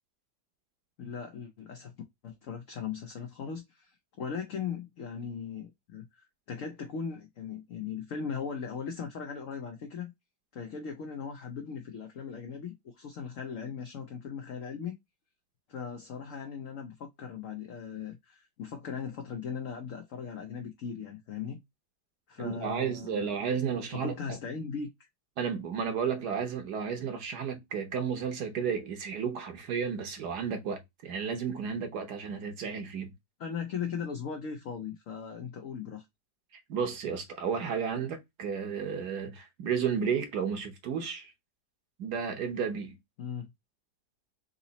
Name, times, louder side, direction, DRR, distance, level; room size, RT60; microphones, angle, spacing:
voice 1, 1.0-1.9 2.2-10.1 10.5-14.9 15.7-21.6 22.3-23.4 23.7-24.9 33.4-36.0 43.2-43.5, left 6 dB, 60° left, 0.9 m, -38 dB
voice 2, 22.4-24.1 25.4-33.1 36.5-41.3 42.0-43.0, right 6 dB, 70° right, 1.4 m, -32 dB
3.9 x 2.9 x 4.0 m
omnidirectional pair, 1.9 m